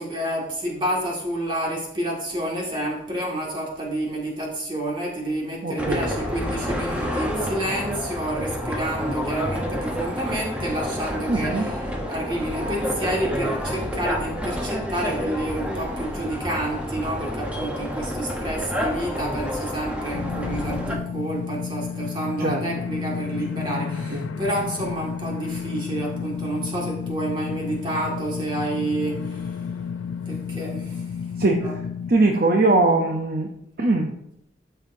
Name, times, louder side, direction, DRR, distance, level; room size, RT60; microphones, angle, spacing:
voice 1, 0.0-29.6 30.3-31.1 31.6-31.8, right 1 dB, 25° right, -2 dB, 2.0 m, -29 dB
voice 2, 5.6-6.1 11.3-11.7 22.4-22.9 24.1-24.3 31.4-31.7 32.1-33.5 33.8-34.1, right 2 dB, 50° right, 2 dB, 0.7 m, -21 dB
sound 1, 5.8-20.9, equal, 5° right, 0.9 m, -29 dB
sound 2, 20.1-32.1, left 6 dB, 85° left, 0.5 m, -31 dB
13.0 x 5.6 x 2.7 m, 0.76 s
head